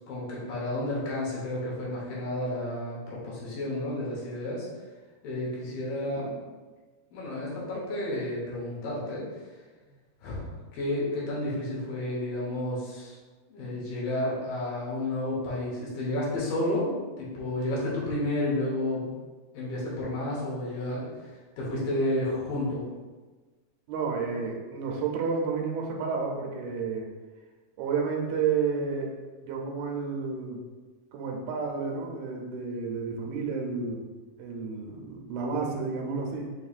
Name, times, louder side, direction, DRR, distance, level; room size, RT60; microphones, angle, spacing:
voice 1, 0.0-4.7 5.2-6.4 7.1-9.3 10.2-13.2 13.5-19.1 19.5-21.1 21.6-22.9, left 1 dB, 70° left, -6 dB, 2.6 m, -31 dB
voice 2, 23.9-27.1 27.8-30.6 31.1-34.1 34.4-36.5, right 5 dB, 85° right, 1 dB, 2.5 m, -31 dB
6.6 x 3.0 x 2.4 m, 1.3 s
omnidirectional pair, 4.3 m